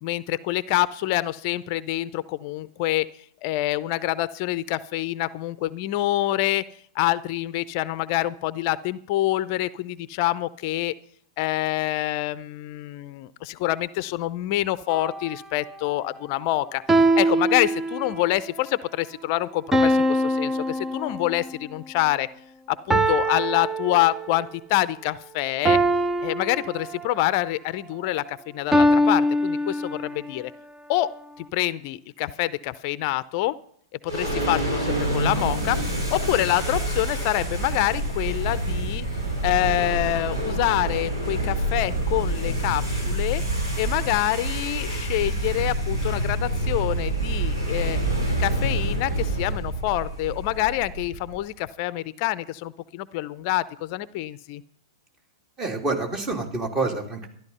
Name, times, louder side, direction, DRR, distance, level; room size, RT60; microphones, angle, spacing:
voice 1, 0.0-3.1 3.4-6.6 6.9-10.9 11.4-22.3 22.7-25.8 26.2-30.5 30.9-31.1 31.4-33.5 34.0-35.8 36.1-39.0 39.4-43.4 43.8-48.0 48.4-54.6, left 16 dB, 45° left, 17 dB, 0.6 m, -26 dB
sound 1, 14.9-15.3 16.9-18.4 19.7-21.5 22.9-24.5 25.6-27.3 28.7-30.3, right 1 dB, 10° right, 0.7 m, -23 dB
sound 2, 34.1-51.4, right 1 dB, 80° right, 6.0 m, -27 dB
voice 2, 55.6-57.3, right 3 dB, 25° right, 4 dB, 3.0 m, -27 dB
13.5 x 12.0 x 5.6 m, 0.62 s
hypercardioid pair, 110°, 2 cm